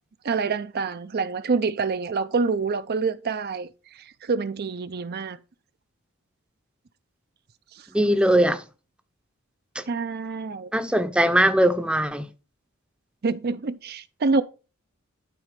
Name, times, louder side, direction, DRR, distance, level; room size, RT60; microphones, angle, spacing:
voice 1, 0.2-3.7 4.2-5.4 7.8-7.9 9.9-10.7 13.2-14.4, right 4 dB, 50° right, 0.5 m, -26 dB
voice 2, 7.9-8.6 9.8-9.9 10.7-12.3, right 1 dB, 5° right, 0.7 m, -20 dB
12.0 x 4.2 x 5.1 m
head